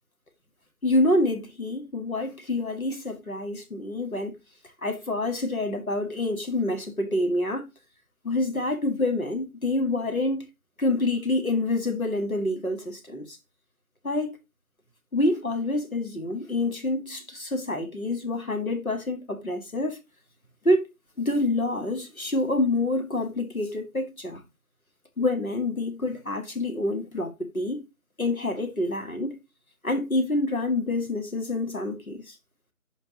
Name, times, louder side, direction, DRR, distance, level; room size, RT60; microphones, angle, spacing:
voice 1, 0.8-4.3 4.8-7.7 8.2-10.4 10.8-13.3 14.0-14.3 15.1-20.0 20.6-20.8 21.2-24.4 25.2-27.8 28.2-29.4 29.8-32.3, left 2 dB, 65° left, 2.1 m, -27 dB
12.0 x 4.4 x 2.9 m
figure-of-eight pair, 180°, 45 cm